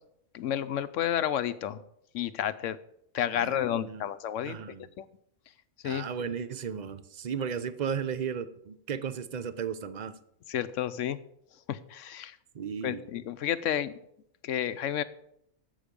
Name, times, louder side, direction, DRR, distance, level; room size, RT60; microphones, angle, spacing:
voice 1, 0.3-1.8 2.1-2.8 3.1-5.1 5.8-6.0 10.5-11.2 11.7-12.4 12.8-13.9 14.4-15.0, left 10 dB, 75° left, 14 dB, 0.9 m, -31 dB
voice 2, 4.4-4.9 5.8-10.1 12.5-13.0, right 7 dB, 45° right, 13 dB, 0.6 m, -35 dB
11.5 x 7.9 x 5.2 m, 0.73 s
omnidirectional pair, 1.4 m